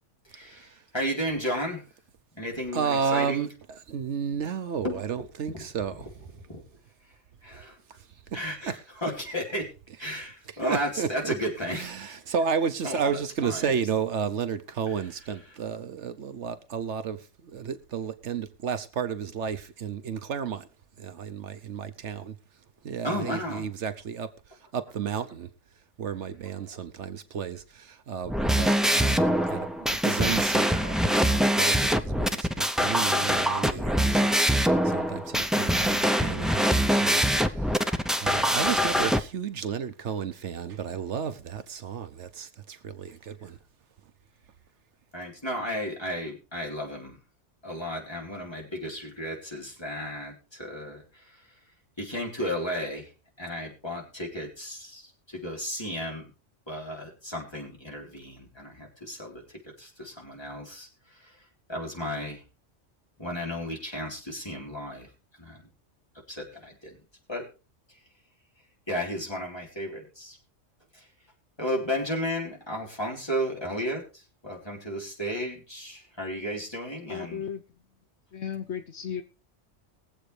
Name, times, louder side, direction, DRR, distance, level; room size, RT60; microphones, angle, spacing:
voice 1, 0.3-1.8 2.4-3.5 4.8-5.0 5.5-5.7 6.5-6.6 7.4-7.8 8.3-9.7 10.0-12.2 12.8-13.7 23.0-23.7 37.9-38.0 45.1-47.2 47.6-51.4 52.0-53.1 53.4-56.3 56.7-59.4 59.8-61.4 61.7-62.4 63.2-65.1 65.4-65.6 66.3-67.0 67.3-67.5 68.9-70.4 70.9-71.1 71.6-77.4, equal, 20° left, 4.0 m, -34 dB
voice 2, 2.7-3.5 3.9-6.1 8.3-8.7 10.6-11.3 11.7-20.7 21.0-22.4 22.8-24.3 24.7-25.5 26.0-43.6, right 7 dB, 70° right, 1.1 m, -32 dB
sound 1, 28.2-39.2, equal, ahead, 0.4 m, -24 dB
voice 3, 77.1-77.6 78.3-79.2, left 8 dB, 65° left, 1.2 m, -34 dB
21.5 x 7.8 x 3.3 m
omnidirectional pair, 1.3 m